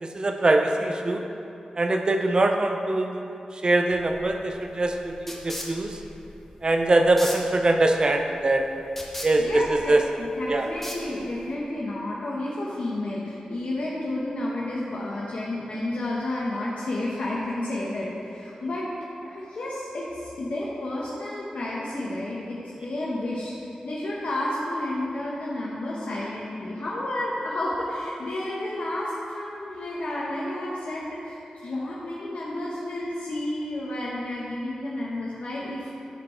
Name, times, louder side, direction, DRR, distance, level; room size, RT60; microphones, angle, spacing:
voice 1, 0.0-1.2 1.8-6.0 6.6-8.7 9.2-10.0 10.5-10.7, right 2 dB, 40° right, 4 dB, 0.6 m, -23 dB
sound 1, 3.9-11.6, left 1 dB, 10° left, 1.1 m, -40 dB
voice 2, 9.4-18.9 19.2-35.9, left 1 dB, 75° left, -6 dB, 1.0 m, -31 dB
11.0 x 4.6 x 4.4 m, 2.8 s
wide cardioid pair, 105°, 2 cm